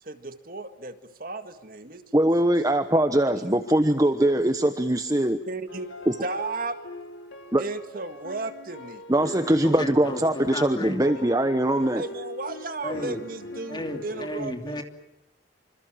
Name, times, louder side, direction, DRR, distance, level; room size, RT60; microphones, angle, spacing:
voice 1, 0.0-2.3 3.3-3.5 5.5-5.9 6.2-6.8 7.6-9.0 11.0-11.4 11.8-14.8, right 3 dB, 50° right, 9 dB, 1.9 m, -35 dB
voice 2, 2.1-5.4 6.1-6.2 7.5-7.6 9.1-12.0, right 1 dB, 20° right, 8 dB, 1.1 m, -22 dB
sound 1, 5.7-14.3, left 1 dB, 85° left, 3.8 m, -41 dB
voice 3, 9.8-11.0 12.8-13.2 13.7-14.8, left 1 dB, 25° left, 6 dB, 2.9 m, -33 dB
27.0 x 26.5 x 7.5 m, 0.90 s
head